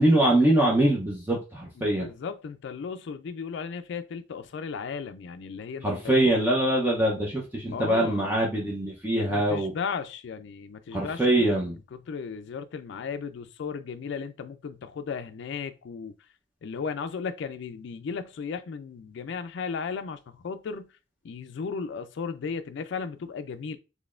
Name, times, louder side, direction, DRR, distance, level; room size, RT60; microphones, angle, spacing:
voice 1, 0.0-2.1 5.8-9.7 10.9-11.8, right 1 dB, 10° right, 0.7 m, -23 dB
voice 2, 1.8-6.2 7.7-8.3 9.3-16.2 16.6-20.9 21.2-23.8, left 5 dB, 65° left, 0.4 m, -35 dB
4.0 x 3.1 x 2.5 m
head